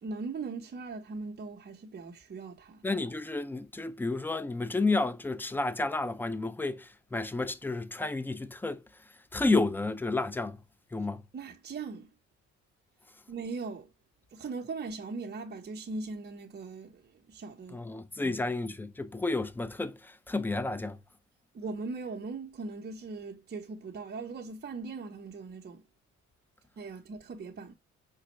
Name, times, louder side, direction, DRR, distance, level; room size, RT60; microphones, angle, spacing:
voice 1, 0.0-2.9 11.3-12.1 13.3-13.9 14.3-17.9 18.2-18.5 21.5-25.8 26.8-27.7, right 4 dB, 35° right, 0.7 m, -40 dB
voice 2, 2.8-8.8 9.3-10.6 10.9-11.2 17.7-21.0, left 3 dB, 5° left, 0.3 m, -31 dB
5.1 x 2.2 x 2.9 m
cardioid pair, 90°, 30 cm